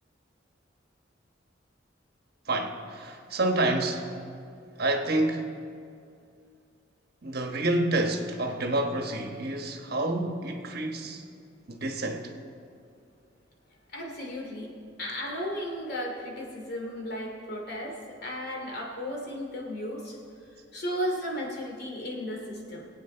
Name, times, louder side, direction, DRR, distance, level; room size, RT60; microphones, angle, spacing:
voice 1, 2.5-4.1 4.8-5.5 7.2-11.2 11.7-12.3, right 2 dB, 60° right, 1.2 m, -28 dB
voice 2, 13.9-14.7 15.0-20.2 20.7-22.9, equal, 60° left, 2.7 m, -34 dB
23.0 x 8.5 x 4.4 m
head